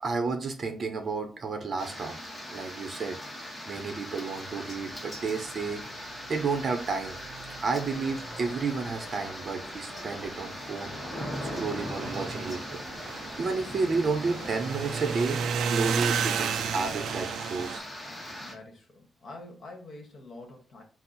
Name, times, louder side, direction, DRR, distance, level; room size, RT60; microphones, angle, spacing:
voice 1, 0.0-2.2 2.5-7.2 7.6-10.9 11.5-12.8 13.4-17.8, right 4 dB, 40° right, 5 dB, 0.6 m, -31 dB
sound 1, 1.8-18.5, equal, 10° left, 0.8 m, -40 dB
sound 2, 4.9-5.0 5.2-9.6 9.9-17.8, right 6 dB, 80° right, 0.3 m, -34 dB
sound 3, 7.6-14.7, equal, 5° right, 1.7 m, -50 dB
voice 2, 18.4-20.8, left 2 dB, 50° left, 1 dB, 1.2 m, -46 dB
4.4 x 2.0 x 4.0 m, 0.37 s
wide cardioid pair, 155°, 0 cm